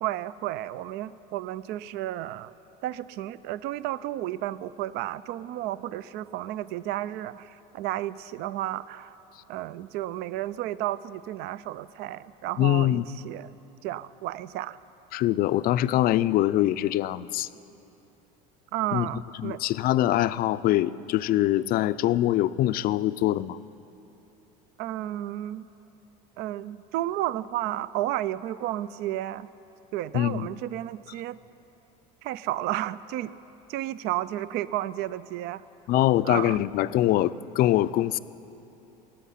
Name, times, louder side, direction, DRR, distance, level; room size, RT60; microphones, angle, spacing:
voice 1, 0.0-2.5 2.8-9.1 9.5-13.6 13.8-14.8 18.7-19.6 24.8-25.7 26.4-29.5 29.9-31.4 32.2-33.3 33.7-35.6 36.2-36.6, right 14 dB, 55° right, 17 dB, 0.4 m, -32 dB
voice 2, 12.6-13.0 15.1-17.5 18.9-19.1 19.4-23.6 30.1-30.5 35.9-38.2, left 14 dB, 50° left, 15 dB, 0.4 m, -23 dB
17.0 x 8.3 x 10.0 m, 3.0 s
supercardioid pair, 115°, 20 cm